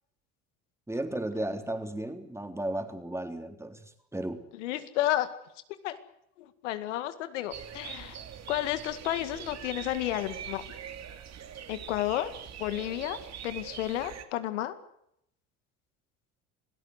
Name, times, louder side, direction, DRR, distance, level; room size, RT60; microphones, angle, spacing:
voice 1, 0.9-4.4, right 1 dB, 5° right, 6 dB, 3.6 m, -34 dB
voice 2, 4.5-5.3 5.8-6.0 6.4-8.2 8.5-10.6 11.7-12.3 12.6-13.2 13.4-14.7, left 14 dB, 90° left, 12 dB, 2.1 m, -31 dB
sound 1, 7.5-14.2, right 8 dB, 45° right, 2.9 m, -43 dB
27.0 x 17.5 x 8.1 m, 0.77 s
supercardioid pair, 85°, 35 cm